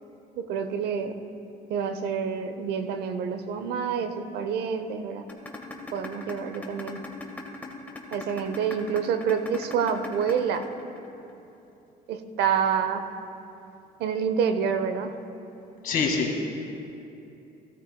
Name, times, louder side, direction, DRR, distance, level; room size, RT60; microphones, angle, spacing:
voice 1, 0.4-1.2 1.7-5.3 5.9-7.0 8.1-10.7 12.1-13.1 14.0-15.1, right 7 dB, 75° right, 9 dB, 0.8 m, -27 dB
sound 1, 5.3-11.3, left 2 dB, 10° left, 1.4 m, -38 dB
voice 2, 15.8-16.5, left 4 dB, 60° left, 0 dB, 2.1 m, -25 dB
17.5 x 13.0 x 2.3 m, 2.8 s
cardioid pair, 110°, 17 cm